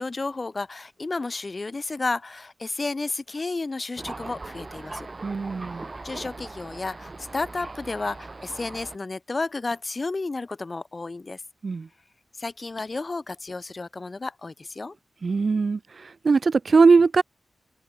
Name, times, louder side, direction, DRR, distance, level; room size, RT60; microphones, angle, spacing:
voice 1, 0.0-5.1 6.0-11.4 12.4-14.9, left 3 dB, 35° left, 0.6 m, -32 dB
Thunder, 4.0-9.0, right 3 dB, 30° right, 1.9 m, -40 dB
voice 2, 5.2-5.9 11.6-11.9 15.2-17.2, right 4 dB, 50° right, 0.5 m, -20 dB
wide cardioid pair, 115°, 0 cm